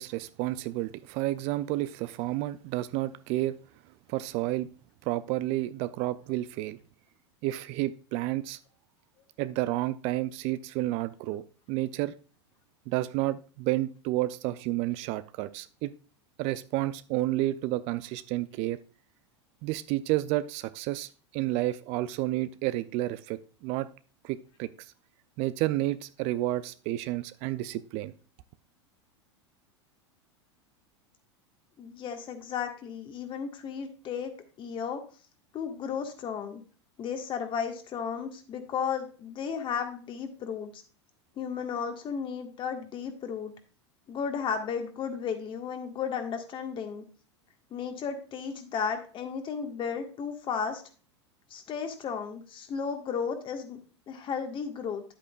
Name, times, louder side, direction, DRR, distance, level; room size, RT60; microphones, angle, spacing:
voice 1, 0.0-3.5 4.1-4.7 5.1-6.8 7.4-8.6 9.4-11.4 11.7-12.1 12.9-15.9 16.4-18.8 19.6-23.9 24.2-24.7 25.4-28.1, right 16 dB, 45° right, 15 dB, 0.4 m, -30 dB
voice 2, 31.8-34.3 34.6-35.0 35.5-36.6 37.0-40.8 41.4-43.5 44.1-47.0 47.7-50.8 51.5-53.8 54.1-55.0, left 6 dB, 35° left, 6 dB, 1.5 m, -34 dB
9.8 x 8.4 x 2.4 m, 0.37 s
hypercardioid pair, 90°, 15 cm